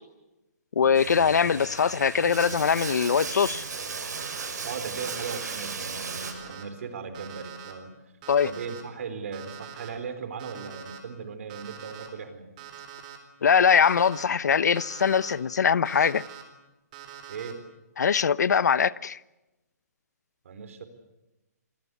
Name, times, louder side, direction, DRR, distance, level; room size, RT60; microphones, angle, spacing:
voice 1, 0.8-3.7 8.3-8.5 13.4-16.2 18.0-19.2, left 6 dB, 80° left, 0.9 m, -22 dB
Bathtub (filling or washing), 0.9-6.3, right 5 dB, 85° right, 7.3 m, -36 dB
Alarm, 4.1-4.5 5.0-5.5 6.0-6.6 7.1-7.7 8.2-8.8 9.3-9.9 10.4-11.0 11.5-12.1 12.6-13.2 13.7-14.2 14.7-15.3 15.8-16.4 16.9-17.5, right 9 dB, 30° right, 4.0 m, -44 dB
voice 2, 4.6-8.0 8.4-12.5 17.3-17.6 20.4-20.8, right 5 dB, 50° right, 4.2 m, -37 dB
27.5 x 18.0 x 8.5 m
hypercardioid pair, 170°, 9 cm